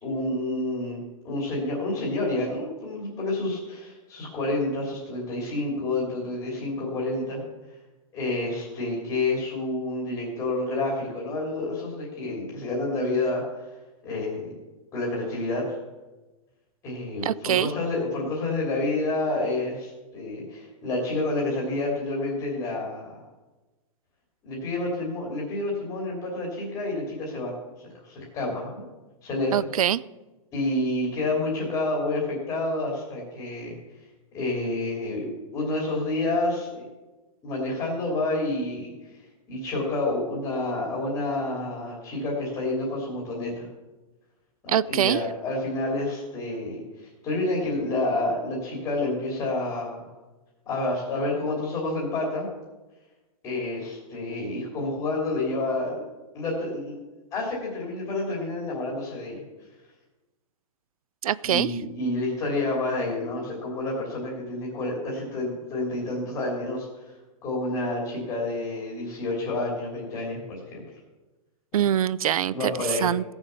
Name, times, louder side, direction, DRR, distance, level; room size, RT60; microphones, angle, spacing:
voice 1, 0.0-7.4 8.1-13.6 14.0-14.5 14.9-15.8 16.8-23.2 24.4-27.5 28.0-28.8 29.2-29.6 30.5-33.7 34.3-36.8 37.4-39.2 39.5-43.7 44.6-50.0 50.7-52.5 53.4-56.0 56.3-57.0 57.3-59.4 61.5-67.1 67.4-70.8 71.7-71.8 72.5-73.1, left 2 dB, 15° left, -2 dB, 2.9 m, -29 dB
voice 2, 17.2-17.7 29.5-30.0 44.7-45.2 61.2-61.7 71.7-73.2, right 10 dB, 85° right, 21 dB, 0.5 m, -24 dB
16.5 x 7.2 x 6.8 m, 1.1 s
hypercardioid pair, 175°, 18 cm